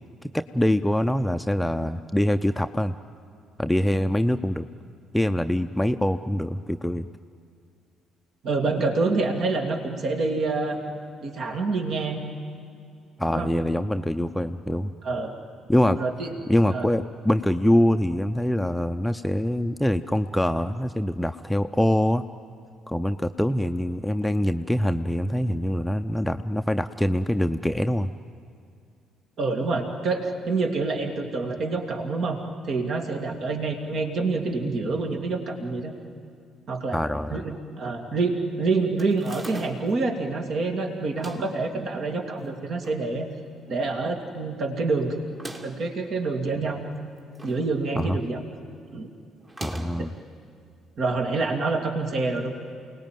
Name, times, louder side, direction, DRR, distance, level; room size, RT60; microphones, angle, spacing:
voice 1, 0.2-3.0 3.6-4.7 5.1-7.1 13.2-14.9 15.7-16.0 16.5-22.2 22.9-28.1 36.9-37.4 48.0-48.2 49.6-50.1, left 1 dB, 5° left, 8 dB, 0.7 m, -24 dB
voice 2, 8.4-10.8 11.2-12.2 13.3-13.5 15.0-15.3 16.0-16.3 16.7-16.9 29.4-35.9 36.7-37.0 37.3-43.3 43.7-45.2 45.6-46.8 47.4-48.4 48.9-49.1 51.0-52.5, right 3 dB, 55° right, 4 dB, 2.3 m, -27 dB
sound 1, 39.0-40.0 41.0-41.6 42.4-43.0 43.4-43.5 43.7-43.8 45.2-45.9 46.9-47.7 48.0-48.3 49.4-50.1, right 2 dB, 30° right, 2.7 m, -41 dB
28.5 x 19.0 x 9.3 m, 2.3 s
figure-of-eight pair, 45°, 0 cm